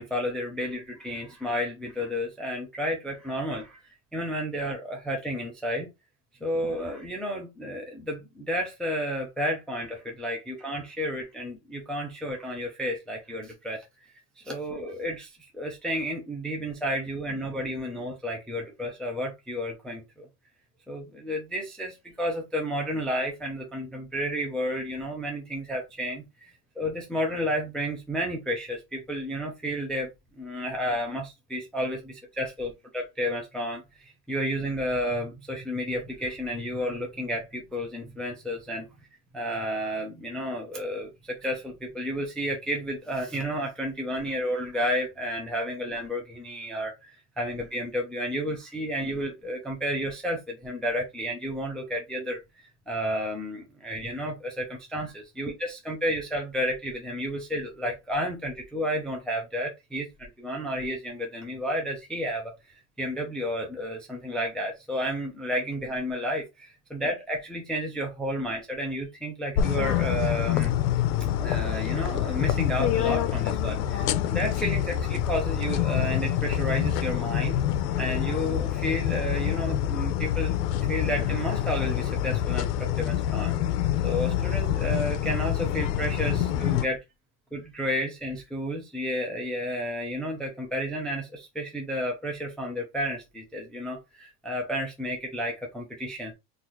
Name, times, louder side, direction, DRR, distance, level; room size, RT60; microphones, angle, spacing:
voice 1, 0.0-3.8 4.1-5.9 6.4-13.9 14.4-20.3 20.9-30.1 30.4-38.9 39.3-52.4 52.9-62.5 63.0-70.7 71.4-77.6 78.0-80.6 80.9-83.6 84.0-87.0 87.5-96.3, equal, ahead, 0.4 m, -31 dB
sound 1, 69.6-86.9, left 11 dB, 75° left, 0.8 m, -26 dB
3.9 x 2.5 x 3.0 m
supercardioid pair, 135°, 47 cm